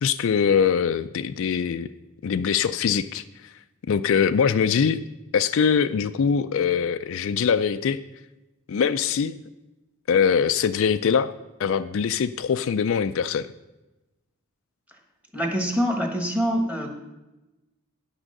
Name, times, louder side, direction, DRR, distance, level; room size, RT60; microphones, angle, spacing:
voice 1, 0.0-1.9 2.2-3.5 3.9-5.0 5.3-8.0 8.7-9.4 10.1-11.3 11.6-13.5, left 7 dB, 60° left, 11 dB, 0.4 m, -22 dB
voice 2, 15.3-16.9, equal, 5° right, 3 dB, 1.3 m, -25 dB
10.0 x 6.2 x 6.5 m, 1.0 s
head